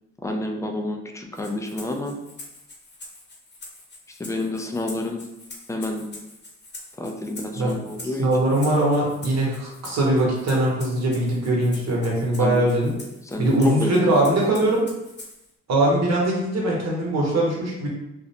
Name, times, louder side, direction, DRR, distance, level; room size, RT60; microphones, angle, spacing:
voice 1, 0.2-2.2 4.2-5.2 5.7-6.1 7.0-8.3 12.4-12.6 13.3-14.1, left 1 dB, 10° left, 3 dB, 0.3 m, -29 dB
Rattle (instrument), 1.3-15.5, left 2 dB, 35° left, 0.8 m, -44 dB
voice 2, 8.2-12.9 13.4-14.8 15.7-17.9, right 1 dB, 60° right, -3 dB, 1.0 m, -21 dB
2.4 x 2.1 x 2.8 m, 0.91 s
cardioid pair, 90°, 30 cm